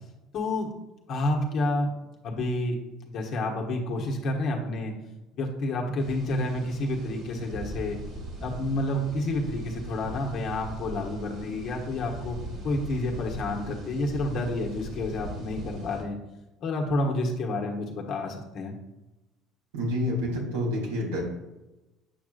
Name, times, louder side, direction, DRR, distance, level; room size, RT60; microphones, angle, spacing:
voice 1, 0.3-0.7 1.1-1.9 2.2-2.8 3.0-4.9 5.3-8.0 8.4-12.4 12.6-16.2 16.6-18.7, left 1 dB, 55° left, 0 dB, 1.4 m, -29 dB
sound 1, 6.0-16.0, equal, 55° right, 2.5 m, -40 dB
voice 2, 19.7-21.2, left 1 dB, 85° right, -3 dB, 2.4 m, -28 dB
8.5 x 6.1 x 2.5 m, 1.0 s
hypercardioid pair, 70°, 0 cm